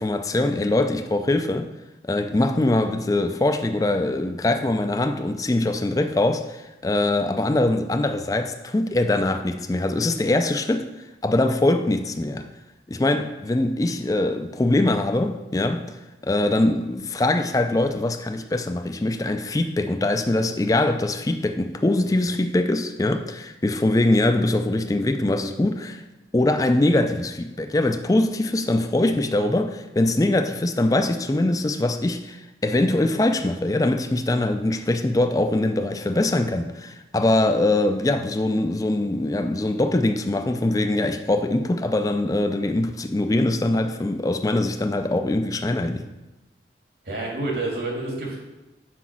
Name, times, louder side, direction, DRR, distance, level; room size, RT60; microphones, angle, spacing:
voice 1, 0.0-1.7 2.1-10.9 11.2-12.5 12.9-26.0 26.3-46.1, left 2 dB, 20° left, 0.4 m, -22 dB
voice 2, 47.1-48.4, right 2 dB, 65° right, 2.0 m, -28 dB
6.1 x 4.9 x 6.0 m
head